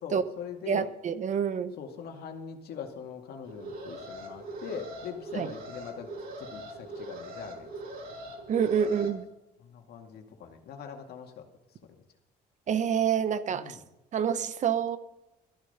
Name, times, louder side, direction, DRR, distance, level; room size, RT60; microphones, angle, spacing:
voice 1, 0.0-0.9 1.8-6.1 6.4-7.7 8.8-8.9 9.6-11.5 13.5-13.8, left 7 dB, 70° left, 3 dB, 2.2 m, -42 dB
voice 2, 0.7-1.7 5.3-5.5 8.5-9.2 12.7-13.8 14.1-15.0, right 7 dB, 45° right, 12 dB, 1.0 m, -27 dB
Alarm, 3.4-9.1, right 1 dB, 60° right, 4.8 m, -41 dB
14.0 x 11.5 x 5.6 m, 0.92 s
cardioid pair, 110°, 17 cm